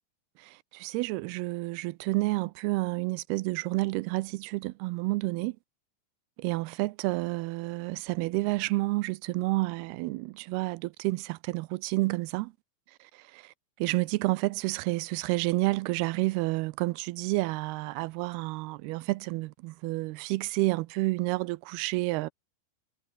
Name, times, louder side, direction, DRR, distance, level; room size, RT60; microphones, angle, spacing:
voice 1, 0.4-5.6 6.4-12.5 13.0-22.3, right 21 dB, 85° right, 2.5 m, -30 dB
omnidirectional pair, 4.6 m